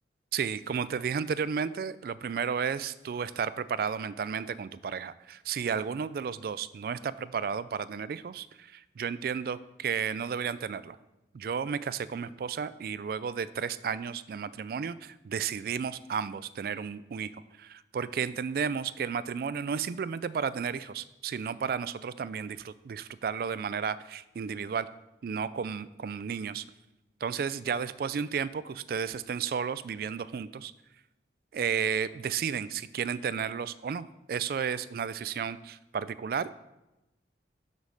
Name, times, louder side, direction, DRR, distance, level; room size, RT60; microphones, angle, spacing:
voice 1, 0.3-11.0 11.3-24.9 25.2-26.6 27.2-30.7 31.5-36.5, right 6 dB, 55° right, 16 dB, 0.3 m, -33 dB
6.3 x 5.3 x 6.4 m, 0.98 s
head